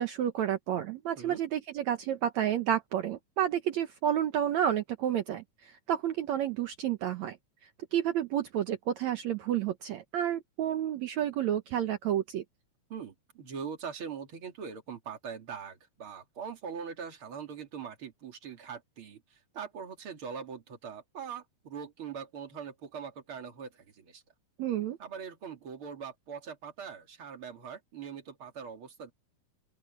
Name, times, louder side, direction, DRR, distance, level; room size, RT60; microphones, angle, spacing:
voice 1, 0.0-7.4 7.9-12.4 24.6-25.0, right 10 dB, 65° right, 2.2 m, -30 dB
voice 2, 12.9-24.2 25.0-29.1, right 6 dB, 40° right, 3.1 m, -42 dB
open air
omnidirectional pair, 3.7 m